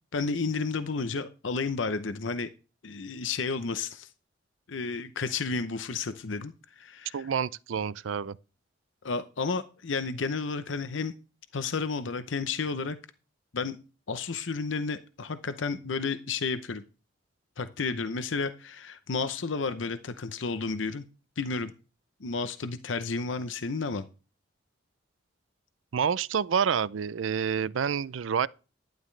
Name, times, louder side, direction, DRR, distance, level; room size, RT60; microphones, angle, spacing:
voice 1, 0.1-2.5 2.8-4.1 4.7-7.2 9.0-11.1 11.5-13.0 13.5-13.8 14.1-16.8 17.6-21.0 21.4-21.7 22.2-24.0, left 4 dB, 85° left, 0.7 m, -32 dB
voice 2, 7.1-8.4 25.9-28.5, right 7 dB, 90° right, 0.4 m, -28 dB
11.5 x 11.0 x 3.3 m
head